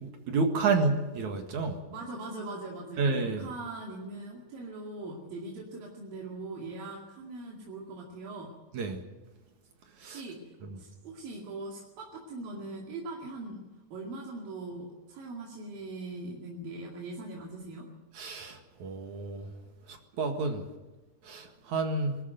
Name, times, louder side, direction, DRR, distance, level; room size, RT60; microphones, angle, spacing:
voice 1, 0.0-1.8 3.0-3.4 8.7-9.0 10.0-10.2 10.6-10.8 18.2-19.5 19.9-20.6 21.2-22.2, right 3 dB, 60° right, 4 dB, 3.0 m, -30 dB
voice 2, 1.9-8.5 10.0-10.4 10.8-13.6 13.9-17.9, right 2 dB, 85° right, -2 dB, 4.2 m, -41 dB
22.0 x 13.0 x 9.3 m, 1.1 s
omnidirectional pair, 3.9 m